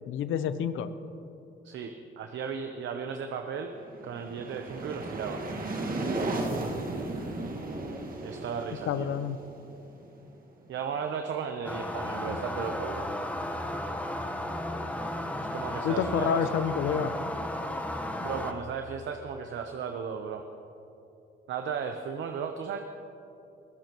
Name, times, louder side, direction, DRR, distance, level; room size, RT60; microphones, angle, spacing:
voice 1, 0.1-0.9 8.9-9.4 12.3-12.4 15.8-17.1, left 8 dB, 85° left, 12 dB, 0.8 m, -28 dB
voice 2, 1.6-3.7 4.0-5.4 8.2-9.1 10.7-13.1 15.4-16.6 18.2-20.5 21.5-22.8, right 6 dB, 70° right, 6 dB, 0.9 m, -35 dB
sound 1, 3.7-10.5, right 2 dB, 45° right, 1.9 m, -35 dB
sound 2, 11.6-18.5, left 1 dB, 5° left, 1.2 m, -34 dB
22.0 x 15.5 x 3.1 m, 2.8 s
cardioid pair, 90°, 20 cm